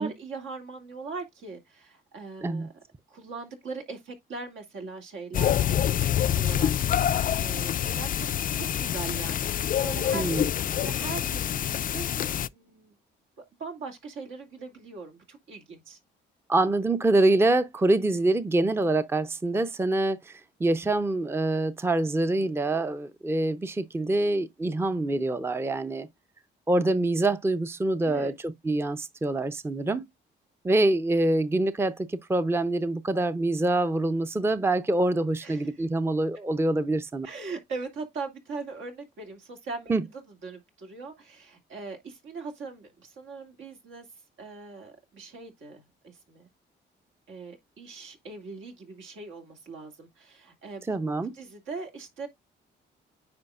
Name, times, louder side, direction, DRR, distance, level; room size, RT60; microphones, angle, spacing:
voice 1, 0.0-2.7 3.1-6.0 6.3-8.3 8.5-9.5 9.8-12.1 12.5-13.0 13.4-16.0 28.0-28.3 35.4-35.7 37.2-44.1 44.4-46.5 47.3-50.9 51.3-52.3, right 4 dB, 75° right, 2.5 m, -40 dB
sound 1, 5.3-12.5, left 10 dB, 45° left, 0.4 m, -26 dB
voice 2, 10.1-10.4 16.5-26.1 26.7-30.0 30.6-37.3 39.9-40.0 50.9-51.3, right 2 dB, 10° right, 0.6 m, -25 dB
9.6 x 4.9 x 2.4 m
cardioid pair, 90°, 20 cm